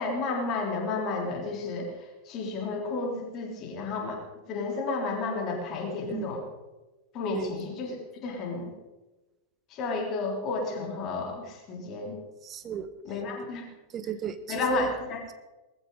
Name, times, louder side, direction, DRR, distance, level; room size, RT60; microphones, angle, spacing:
voice 1, 0.0-1.9 2.3-4.2 4.5-6.4 7.1-8.0 8.2-8.7 9.7-12.2 13.1-13.7 14.5-15.2, left 3 dB, 35° left, 1 dB, 3.5 m, -32 dB
voice 2, 12.4-12.9 13.9-14.9, right 8 dB, 25° right, 11 dB, 1.3 m, -34 dB
19.5 x 15.0 x 3.9 m, 1.1 s
figure-of-eight pair, 90°, 0 cm